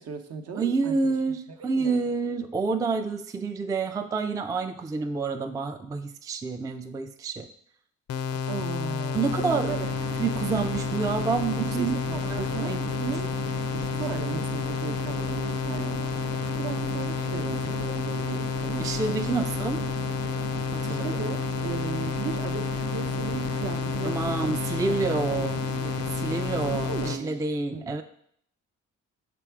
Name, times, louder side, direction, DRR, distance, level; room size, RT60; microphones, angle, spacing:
voice 1, 0.0-1.1 1.5-2.1 8.5-9.9 11.8-13.3 13.7-19.0 19.3-19.5 20.6-24.7 25.1-26.1 26.7-27.4 27.7-28.0, right 6 dB, 55° right, 5 dB, 0.7 m, -37 dB
voice 2, 0.6-7.5 9.1-9.7 10.2-12.8 18.8-19.8 20.7-21.3 24.0-25.6 26.2-28.0, right 4 dB, 10° right, 7 dB, 0.3 m, -28 dB
sound 1, 8.1-27.2, left 6 dB, 55° left, 0.4 m, -30 dB
sound 2, 9.6-27.1, right 7 dB, 85° right, 0.6 m, -38 dB
6.0 x 3.5 x 4.5 m, 0.66 s
cardioid pair, 90°, 30 cm